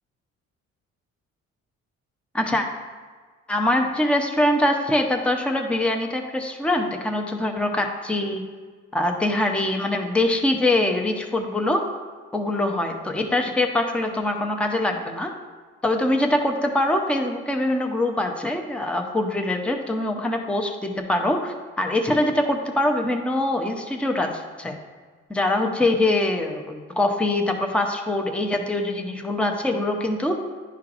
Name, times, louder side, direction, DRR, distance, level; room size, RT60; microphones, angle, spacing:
voice 1, 2.3-2.7 3.5-8.4 8.9-11.8 12.3-15.3 15.8-24.8 25.3-30.4, left 1 dB, 5° left, 3 dB, 0.6 m, -23 dB
10.5 x 4.5 x 2.5 m, 1.5 s
cardioid pair, 90°, 30 cm